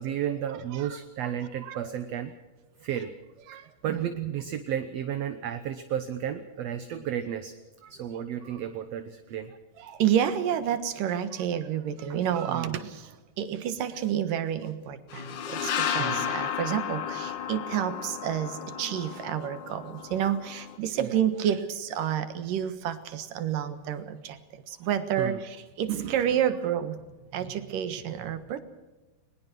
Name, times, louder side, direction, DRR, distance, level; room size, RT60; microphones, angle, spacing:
voice 1, 0.0-2.3 2.8-3.1 3.8-7.5 7.9-9.5 12.1-12.2 12.5-12.8 16.0-16.3 21.0-21.1 25.2-25.4, right 9 dB, 65° right, 9 dB, 1.9 m, -33 dB
voice 2, 0.7-1.3 1.6-1.9 3.5-4.3 9.8-27.0 27.3-28.6, right 10 dB, 85° right, 11 dB, 3.1 m, -30 dB
sound 1, 15.1-20.8, left 8 dB, 65° left, 1.1 m, -33 dB
22.0 x 20.5 x 6.1 m, 1.1 s
omnidirectional pair, 3.8 m